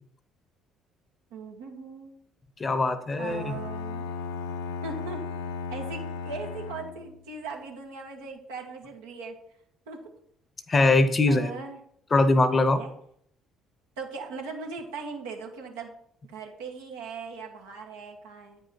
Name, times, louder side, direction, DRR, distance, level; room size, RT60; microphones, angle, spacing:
voice 1, 1.3-2.2 3.2-4.1 4.8-5.2 5.7-9.4 9.9-10.0 11.3-11.8 12.7-12.9 14.0-15.9 16.3-18.6, right 4 dB, 75° right, 1 dB, 1.4 m, -39 dB
voice 2, 2.6-3.5 10.7-11.5 12.1-12.8, left 2 dB, 30° left, 12 dB, 0.9 m, -22 dB
Bowed string instrument, 3.3-7.2, left 5 dB, 70° left, 0.6 m, -35 dB
9.1 x 5.3 x 4.4 m, 0.68 s
figure-of-eight pair, 50°, 0 cm